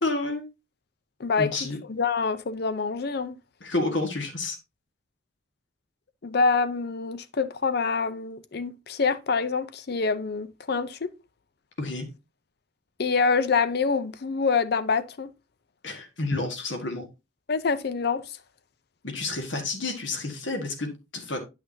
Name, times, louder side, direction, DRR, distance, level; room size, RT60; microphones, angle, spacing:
voice 1, 0.0-0.5 1.4-1.8 3.6-4.6 11.8-12.1 15.8-17.1 19.0-21.4, left 2 dB, 70° left, 1.7 m, -30 dB
voice 2, 1.2-1.5 1.9-3.4 6.2-11.1 13.0-15.3 17.5-18.4, left 4 dB, 55° left, 0.5 m, -26 dB
9.5 x 5.8 x 2.8 m
head